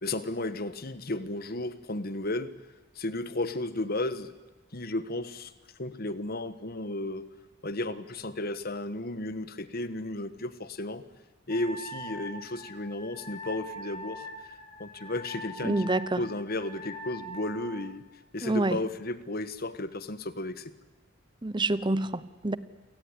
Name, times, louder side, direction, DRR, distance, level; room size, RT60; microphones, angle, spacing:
voice 1, 0.0-2.5 3.0-4.3 4.7-5.5 5.8-7.3 7.6-11.0 11.5-14.3 14.8-15.9 16.2-18.0 18.3-20.7, left 2 dB, 50° left, 13 dB, 1.4 m, -33 dB
Wind instrument woodwind instrument, 11.5-17.8, equal, 30° left, 7.2 m, -42 dB
voice 2, 15.6-16.2 18.4-18.8 21.4-22.6, right 2 dB, 25° right, 17 dB, 0.8 m, -27 dB
28.5 x 18.0 x 10.0 m, 1.1 s
head